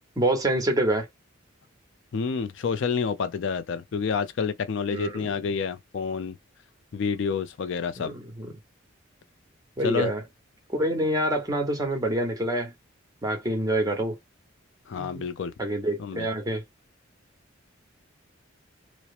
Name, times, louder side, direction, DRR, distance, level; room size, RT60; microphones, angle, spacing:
voice 1, 0.2-1.1 4.9-5.3 7.9-8.5 9.8-10.2 10.7-12.7 13.2-14.2 15.0-15.2 15.6-16.6, right 1 dB, 15° right, 0.8 m, -26 dB
voice 2, 2.1-6.4 6.9-8.1 9.8-10.1 14.9-15.5 16.0-16.3, left 5 dB, 60° left, 0.3 m, -28 dB
2.8 x 2.0 x 2.3 m
head